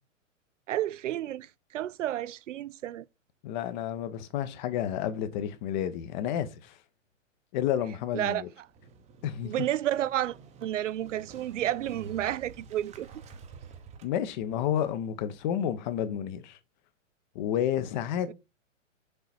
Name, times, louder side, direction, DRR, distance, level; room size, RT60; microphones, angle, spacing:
voice 1, 0.7-3.1 8.1-8.7 9.4-13.1 18.3-18.4, right 12 dB, 70° right, 0.5 m, -31 dB
voice 2, 3.4-6.8 7.5-8.5 9.2-9.5 14.0-16.6 17.3-18.3, left 10 dB, 35° left, 1.0 m, -30 dB
Motorcycle, 8.7-15.4, right 5 dB, 20° right, 0.9 m, -49 dB
6.8 x 4.1 x 4.3 m
hypercardioid pair, 125°, 38 cm